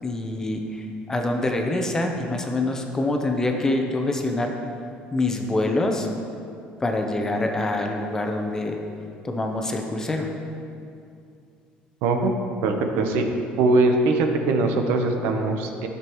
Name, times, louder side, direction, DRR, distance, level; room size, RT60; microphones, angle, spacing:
voice 1, 0.0-4.5 5.1-6.1 6.8-8.8 9.2-10.3, left 2 dB, 15° left, 3 dB, 0.7 m, -25 dB
voice 2, 12.0-12.3 12.6-13.2 13.6-15.9, right 3 dB, 80° right, 4 dB, 0.9 m, -21 dB
11.0 x 6.8 x 3.1 m, 2.5 s
cardioid pair, 145°, 4 cm